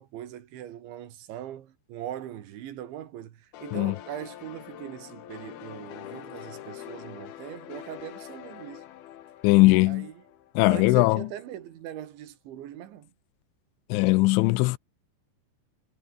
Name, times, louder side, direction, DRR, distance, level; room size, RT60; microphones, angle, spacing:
voice 1, 0.0-8.8 9.8-10.1 10.7-13.1, right 11 dB, 75° right, 4.3 m, -40 dB
sound 1, 3.5-11.0, left 12 dB, 65° left, 3.0 m, -44 dB
voice 2, 9.4-10.1 10.6-11.3 13.9-14.8, left 22 dB, 85° left, 3.0 m, -20 dB
omnidirectional pair, 5.5 m